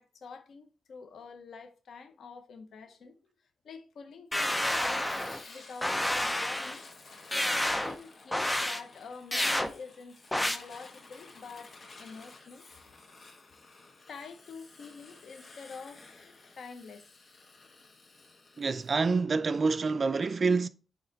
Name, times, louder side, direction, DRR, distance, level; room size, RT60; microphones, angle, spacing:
voice 1, 0.0-3.2 3.6-5.1 5.5-6.8 7.3-11.7 12.0-12.7 14.1-17.0, left 5 dB, 80° left, 0.9 m, -46 dB
sound 1, 4.3-5.4 5.8-6.8 7.3-8.0 8.3-8.8 9.3-9.7 10.3-10.6, left 1 dB, 10° left, 0.6 m, -29 dB
Fire, 4.4-19.0, left 3 dB, 50° left, 1.3 m, -53 dB
voice 2, 18.6-20.7, right 4 dB, 45° right, 0.4 m, -27 dB
8.8 x 3.1 x 3.9 m
wide cardioid pair, 100°, 0 cm